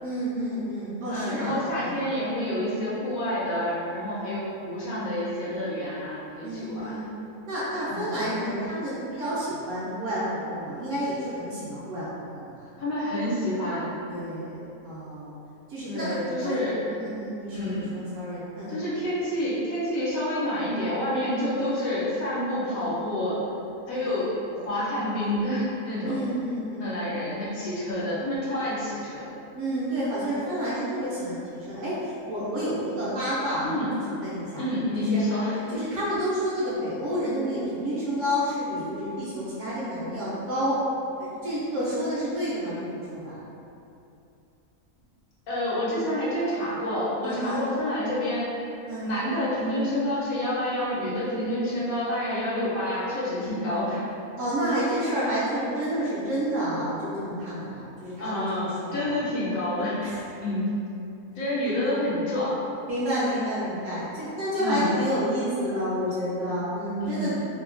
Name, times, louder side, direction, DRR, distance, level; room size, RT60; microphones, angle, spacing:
voice 1, 0.0-2.0 6.4-7.1 7.5-12.7 14.1-15.4 15.7-16.6 17.0-18.7 26.0-26.9 29.5-31.4 31.7-33.8 34.1-34.6 35.0-35.2 35.5-40.8 41.2-43.4 47.2-47.7 48.9-49.2 54.4-59.1 60.0-60.2 62.9-67.4, equal, 65° right, -9 dB, 0.8 m, -30 dB
voice 2, 1.0-7.0 7.9-8.2 12.8-13.9 15.8-16.8 17.5-17.9 18.7-23.4 23.9-26.2 26.8-29.3 33.6-33.9 34.6-35.8 45.5-48.6 49.0-54.0 58.2-60.1 60.4-60.8 61.3-62.6 64.6-64.9 67.0-67.4, left 1 dB, 70° left, -8 dB, 1.1 m, -28 dB
2.8 x 2.2 x 2.4 m, 2.8 s
omnidirectional pair, 1.6 m